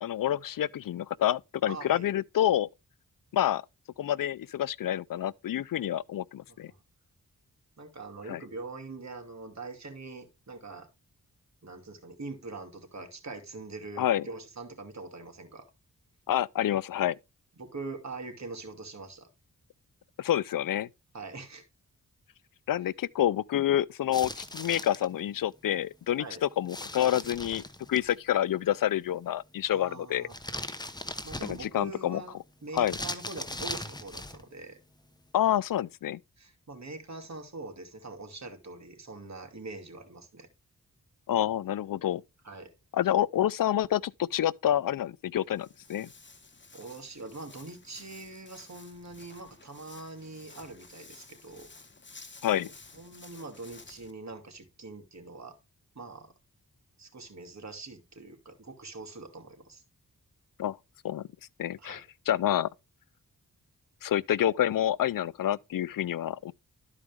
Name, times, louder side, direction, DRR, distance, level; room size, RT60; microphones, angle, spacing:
voice 1, 0.0-2.7 3.3-3.6 4.0-6.7 8.3-8.4 14.0-14.3 16.3-17.2 20.2-20.9 22.7-27.6 27.9-30.3 31.5-32.2 32.7-33.0 35.3-36.2 41.3-42.2 42.9-46.1 52.4-52.7 60.6-60.8 61.0-61.3 61.6-62.7 64.0-66.5, left 11 dB, 65° left, 0.5 m, -28 dB
voice 2, 1.7-2.1 6.5-6.8 7.8-10.9 11.6-15.7 17.6-19.3 21.1-21.6 26.2-26.4 29.7-30.4 31.2-34.8 36.4-40.5 42.4-42.7 46.7-51.7 52.6-55.6 55.9-56.3 57.0-59.8 61.8-62.0, right 3 dB, 50° right, 2.6 m, -43 dB
sound 1, 24.1-25.1 26.7-28.1 30.3-31.8 32.8-34.4, left 1 dB, 10° left, 1.0 m, -39 dB
Walk footsteps, 45.4-54.1, left 3 dB, 30° left, 1.4 m, -53 dB
12.5 x 5.0 x 3.5 m
cardioid pair, 60°, 36 cm